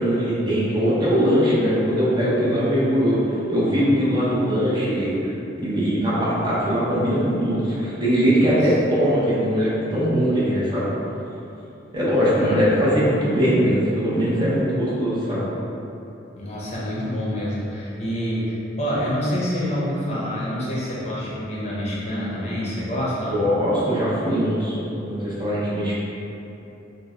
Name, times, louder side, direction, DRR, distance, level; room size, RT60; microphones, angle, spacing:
voice 1, 0.0-3.2 3.5-5.3 5.6-10.9 11.9-15.4 23.3-26.0, equal, 25° right, -8 dB, 0.6 m, -21 dB
voice 2, 8.3-8.6 12.4-12.7 16.4-23.5, equal, 35° left, -7 dB, 0.7 m, -27 dB
3.2 x 2.1 x 3.6 m, 3.0 s
head